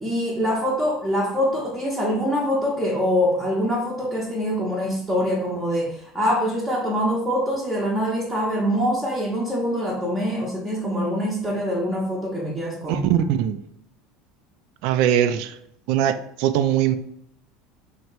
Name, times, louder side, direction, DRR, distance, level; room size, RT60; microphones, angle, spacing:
voice 1, 0.0-13.1, equal, 10° right, -4 dB, 0.7 m, -24 dB
voice 2, 12.9-13.6 14.8-15.5 15.9-17.0, right 10 dB, 65° right, 11 dB, 0.4 m, -21 dB
3.2 x 2.8 x 4.4 m, 0.73 s
cardioid pair, 150°, 0 cm